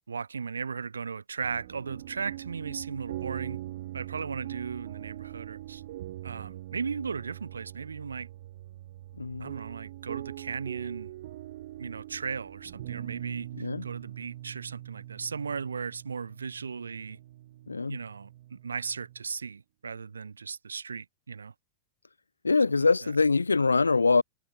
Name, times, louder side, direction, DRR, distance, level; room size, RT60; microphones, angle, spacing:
voice 1, 0.1-3.6 3.9-5.8 6.2-8.3 9.4-11.1 11.8-17.2 17.9-21.5 22.8-23.1, right 5 dB, 75° right, 2.2 m, -36 dB
sound 1, 1.4-19.2, right 15 dB, 55° right, 4.5 m, -42 dB
voice 2, 9.2-9.5 13.6-13.8 17.7-18.0 22.4-24.2, left 4 dB, 80° left, 0.8 m, -24 dB
figure-of-eight pair, 90°, 0 cm